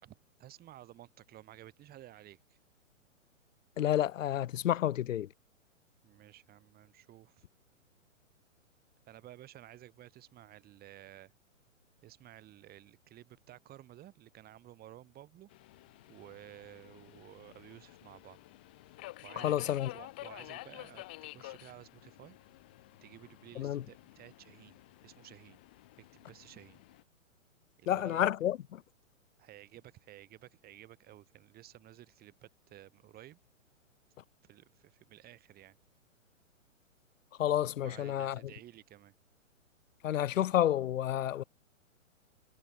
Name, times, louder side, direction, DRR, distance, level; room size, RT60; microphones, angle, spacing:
voice 1, 0.0-2.6 6.0-7.5 9.1-11.3 12.0-15.5 16.1-18.4 19.2-22.4 23.0-25.6 26.0-26.8 27.8-28.2 29.4-33.4 34.5-35.8 37.8-39.1, right 13 dB, 25° right, 5.3 m, -54 dB
voice 2, 3.8-5.3 19.4-19.9 23.6-23.8 27.9-28.8 37.4-38.4 40.0-41.4, left 11 dB, 75° left, 0.5 m, -30 dB
Subway metro underground, 15.5-27.0, left 19 dB, 10° left, 0.3 m, -51 dB
figure-of-eight pair, 125°, 39 cm